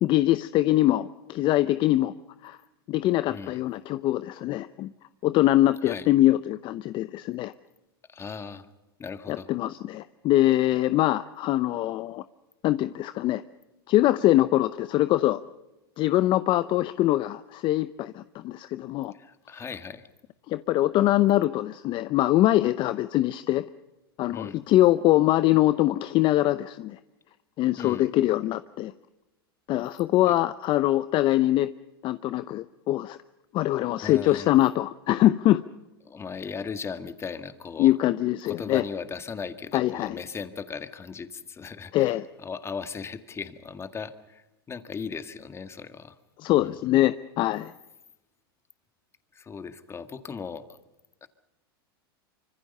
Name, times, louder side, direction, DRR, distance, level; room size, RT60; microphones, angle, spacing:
voice 1, 0.0-2.1 2.4-2.6 2.9-4.9 5.2-7.5 9.3-12.2 12.6-13.4 13.9-15.4 16.0-19.1 20.5-23.6 24.2-27.0 27.6-28.9 29.7-31.7 32.0-33.2 33.5-35.6 37.8-38.8 39.7-40.2 41.9-42.2 46.4-47.7, left 15 dB, 40° left, 14 dB, 0.7 m, -23 dB
voice 2, 3.3-3.6 5.8-6.1 8.1-8.7 9.0-9.5 19.1-20.1 24.3-24.6 27.8-28.1 34.0-34.5 36.0-37.9 38.5-46.2 46.6-46.7 49.3-50.8 51.2-51.3, left 5 dB, 20° left, 10 dB, 1.8 m, -37 dB
25.5 x 24.5 x 5.5 m, 1.0 s
hypercardioid pair, 110°, 13 cm